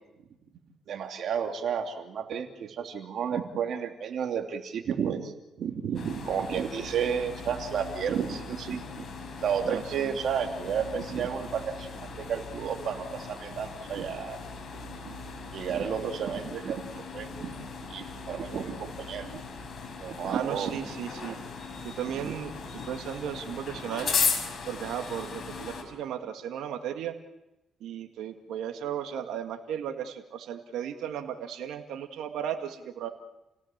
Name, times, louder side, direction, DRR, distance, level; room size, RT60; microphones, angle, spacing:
voice 1, 0.9-5.3 5.6-9.0 9.4-14.4 14.7-15.2 15.5-19.3 20.0-20.8 21.2-21.4 22.2-22.3, right 7 dB, 65° right, 4 dB, 2.9 m, -32 dB
sound 1, 5.9-25.8, left 5 dB, 50° left, 5.4 m, -37 dB
voice 2, 9.7-10.2 20.3-21.4 21.8-24.1 24.7-27.1 27.8-33.1, right 9 dB, 80° right, 5 dB, 1.9 m, -35 dB
29.5 x 17.5 x 7.4 m, 0.95 s
cardioid pair, 90°, 0 cm